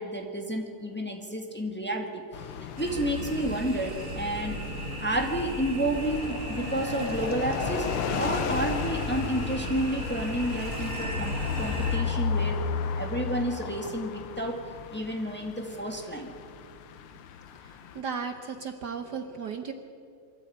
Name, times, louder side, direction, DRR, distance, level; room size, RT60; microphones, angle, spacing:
voice 1, 0.0-2.5 2.8-4.6 5.0-12.6 13.0-14.6 14.9-16.3, right 1 dB, 5° left, 2 dB, 1.7 m, -31 dB
sound 1, 2.3-18.0, left 6 dB, 90° left, 1.8 m, -34 dB
sound 2, 2.8-12.0, right 1 dB, 35° right, 2.6 m, -36 dB
voice 2, 17.9-19.7, right 6 dB, 60° right, 7 dB, 1.4 m, -35 dB
23.5 x 14.0 x 8.8 m, 2.3 s
omnidirectional pair, 2.3 m